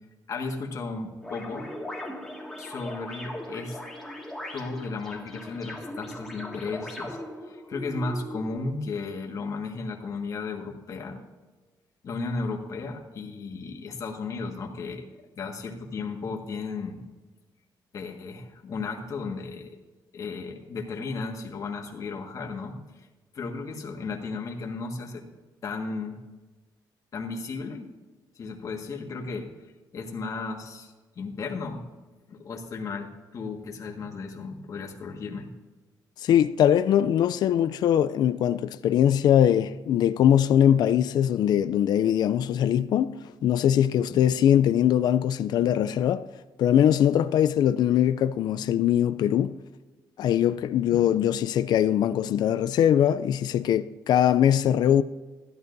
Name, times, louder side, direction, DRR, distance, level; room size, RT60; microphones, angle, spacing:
voice 1, 0.3-1.7 2.6-3.8 4.5-11.2 12.0-15.1 15.4-17.0 17.9-19.7 20.1-23.1 23.3-25.3 25.6-26.2 27.1-27.9 28.3-29.5 29.9-31.8 32.3-35.5, left 4 dB, 45° left, 1.7 m, -34 dB
sound 1, 1.2-8.5, left 1 dB, ahead, 2.0 m, -39 dB
voice 2, 36.2-46.2 46.6-49.6 50.2-55.0, left 10 dB, 60° left, 0.4 m, -22 dB
15.5 x 12.0 x 2.6 m
cardioid pair, 145°, 8 cm